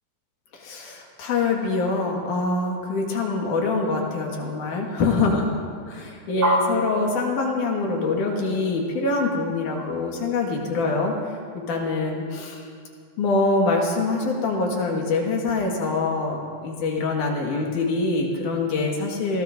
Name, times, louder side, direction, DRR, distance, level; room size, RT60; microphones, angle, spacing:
voice 1, 0.5-5.5 5.9-11.2 11.7-12.7 13.2-19.4, left 3 dB, 80° left, 0 dB, 3.2 m, -24 dB
sound 1, 6.4-11.0, equal, 60° right, 4.5 m, -29 dB
25.0 x 17.5 x 2.6 m, 2.3 s
omnidirectional pair, 3.6 m